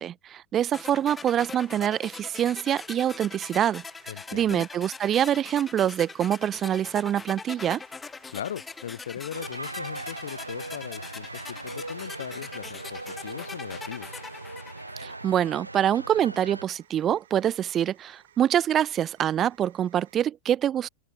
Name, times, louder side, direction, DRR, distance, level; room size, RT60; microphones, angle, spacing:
voice 1, 0.0-3.8 4.3-7.8 15.0-20.9, right 10 dB, 30° right, 0.6 m, -25 dB
sound 1, 0.7-15.6, left 4 dB, 15° left, 0.7 m, -42 dB
sound 2, 1.1-20.2, right 11 dB, 60° right, 6.9 m, -60 dB
voice 2, 4.1-4.6 8.3-14.1, left 10 dB, 65° left, 0.8 m, -38 dB
sound 3, 9.3-16.6, right 2 dB, 85° right, 1.6 m, -39 dB
open air
figure-of-eight pair, 90°, 0 cm